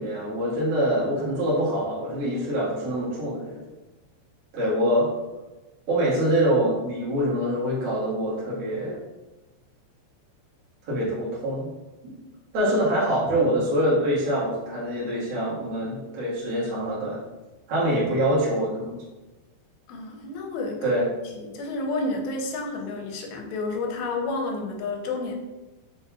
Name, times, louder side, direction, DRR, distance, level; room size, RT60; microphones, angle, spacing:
voice 1, 0.0-3.6 4.5-5.1 5.9-9.0 10.9-11.7 12.5-17.2 17.7-19.0 20.8-21.1, equal, 70° right, -8 dB, 1.4 m, -25 dB
voice 2, 19.9-21.0 21.4-25.3, left 3 dB, 80° left, 1 dB, 2.8 m, -30 dB
6.5 x 2.8 x 2.3 m, 1.1 s
omnidirectional pair, 4.9 m